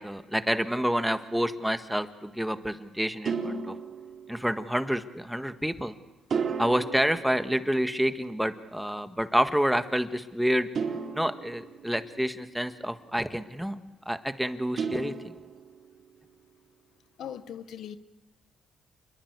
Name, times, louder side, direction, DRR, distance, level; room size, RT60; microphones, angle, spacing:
voice 1, 0.0-3.7 4.3-5.9 6.6-10.7 11.1-13.7 14.0-15.3, equal, 5° right, 10 dB, 1.6 m, -28 dB
sound 1, 0.7-1.1 3.2-4.8 6.3-8.2 10.7-12.4 14.8-15.9, right 5 dB, 50° right, 3.9 m, -34 dB
voice 2, 17.2-18.0, left 9 dB, 75° left, 12 dB, 1.2 m, -39 dB
28.5 x 22.0 x 8.1 m, 1.0 s
cardioid pair, 90°, 0 cm